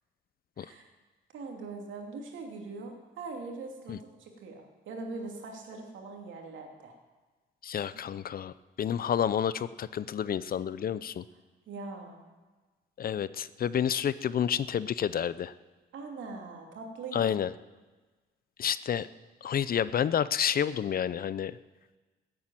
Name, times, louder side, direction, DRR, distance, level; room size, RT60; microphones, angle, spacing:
voice 1, 1.3-6.9 11.7-12.3 15.9-17.4, right 3 dB, 75° right, 2 dB, 2.8 m, -42 dB
voice 2, 7.6-11.2 13.0-15.5 17.1-17.5 18.6-19.1 19.4-21.6, left 9 dB, 50° left, 17 dB, 0.5 m, -29 dB
14.5 x 8.7 x 8.9 m, 1.3 s
cardioid pair, 90°, 20 cm